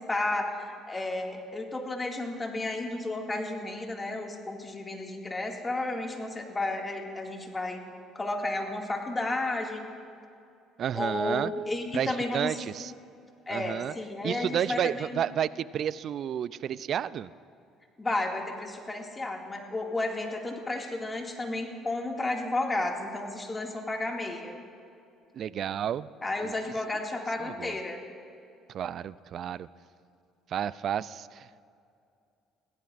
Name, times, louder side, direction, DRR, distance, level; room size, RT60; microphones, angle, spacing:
voice 1, 0.1-7.8 8.1-9.8 10.9-12.6 13.5-15.2 18.0-24.6 26.2-28.0, left 2 dB, 25° left, 1 dB, 2.2 m, -32 dB
voice 2, 10.8-11.5 11.9-12.9 13.5-13.9 14.2-17.3 25.3-26.1 26.4-26.5 27.4-27.8 28.7-29.7 30.5-31.7, right 9 dB, 55° right, 18 dB, 0.4 m, -31 dB
22.0 x 16.0 x 2.6 m, 2.5 s
supercardioid pair, 75°, 0 cm